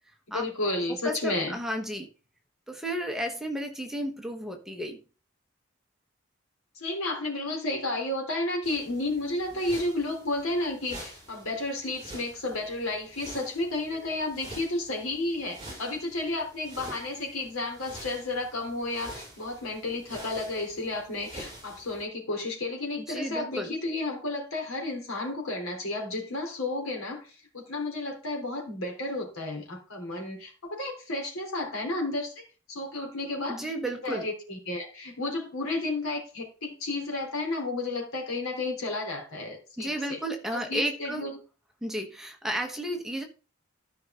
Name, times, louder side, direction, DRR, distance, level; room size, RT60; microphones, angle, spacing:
voice 1, 0.3-1.6 6.8-32.4 32.7-33.6 34.0-40.2 40.5-41.3, left 2 dB, 90° left, 1 dB, 3.7 m, -32 dB
voice 2, 0.9-2.1 2.7-5.0 23.1-23.7 33.5-34.3 39.8-41.3 41.8-43.2, right 1 dB, ahead, 3 dB, 1.2 m, -33 dB
sound 1, 8.6-22.0, right 1 dB, 25° right, 6.1 m, -47 dB
13.5 x 5.6 x 3.8 m, 0.35 s
head